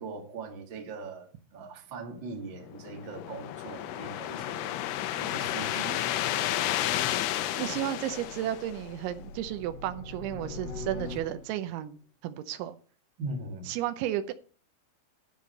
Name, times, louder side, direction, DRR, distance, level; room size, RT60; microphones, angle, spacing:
voice 1, 0.0-5.9 13.2-13.7, right 3 dB, 45° right, 1.5 m, -41 dB
sound 1, 2.6-9.1, left 13 dB, 80° left, 2.5 m, -32 dB
sound 2, 7.1-11.7, left 3 dB, 60° left, 1.8 m, -43 dB
voice 2, 7.6-12.8 13.7-14.3, right 12 dB, 85° right, 3.1 m, -33 dB
12.5 x 5.0 x 6.5 m
omnidirectional pair, 5.4 m